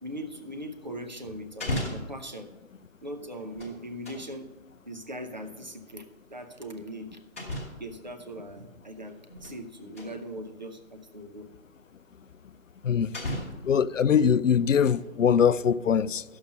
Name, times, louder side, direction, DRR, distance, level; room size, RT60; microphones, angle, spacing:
voice 1, 0.0-2.5 3.0-4.5 4.9-7.2 7.8-11.5, equal, 35° right, 0.7 m, -40 dB
sound 1, 1.6-2.2 3.3-4.3 5.9-6.0 7.4-7.9 9.1-9.6 9.9-10.1 11.0-11.1 12.5-12.6 13.1-13.8 14.5-15.1 15.5-15.6, left 1 dB, 10° left, 1.1 m, -35 dB
voice 2, 12.8-13.1 13.6-16.2, left 7 dB, 65° left, 0.5 m, -22 dB
10.5 x 7.2 x 6.4 m
figure-of-eight pair, 175°, 41 cm